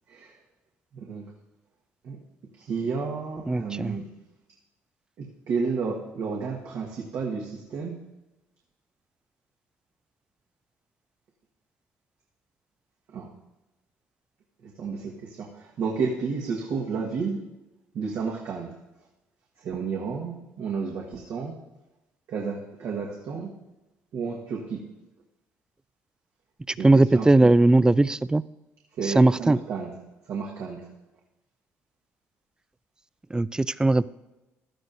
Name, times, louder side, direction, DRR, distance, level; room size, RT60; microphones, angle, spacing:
voice 1, 0.9-1.3 2.0-2.2 2.6-4.1 5.2-8.0 13.1-13.3 14.6-17.4 17.9-18.7 19.6-21.6 22.3-23.5 24.1-24.8 26.8-27.5 29.0-29.9 30.3-30.9, right 5 dB, 65° right, -2 dB, 1.5 m, -31 dB
voice 2, 3.5-4.0 26.8-28.4 29.0-29.6 33.3-34.1, right 2 dB, 15° right, 18 dB, 0.3 m, -19 dB
16.0 x 12.0 x 2.6 m, 1.0 s
supercardioid pair, 70°, 6 cm